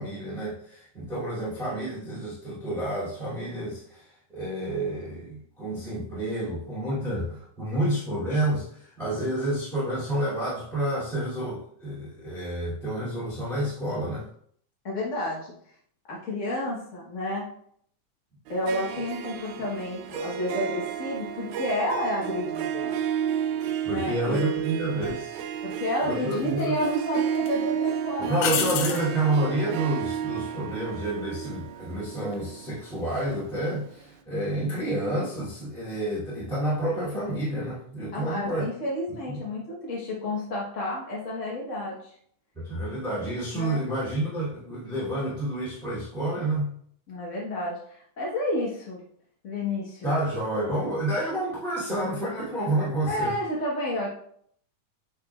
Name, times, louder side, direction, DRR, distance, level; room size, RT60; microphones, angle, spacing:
voice 1, 0.0-14.2 23.8-25.4 26.0-26.7 28.2-38.7 39.3-39.4 42.5-46.7 50.0-53.3, right 1 dB, ahead, -11 dB, 2.3 m, -29 dB
voice 2, 14.8-15.5 16.1-17.5 18.5-23.0 23.9-24.4 25.6-28.9 38.1-42.1 43.5-43.9 47.1-47.8 48.2-49.0 49.4-50.1 53.1-54.1, left 1 dB, 55° left, -4 dB, 0.8 m, -30 dB
Harp, 18.5-33.8, right 8 dB, 80° right, 1.9 m, -32 dB
sound 1, 25.0-25.2 26.3-27.0 27.3-27.5 28.4-29.1 32.2-32.6, left 7 dB, 70° left, 1.9 m, -29 dB
9.7 x 4.7 x 2.4 m, 0.62 s
omnidirectional pair, 3.6 m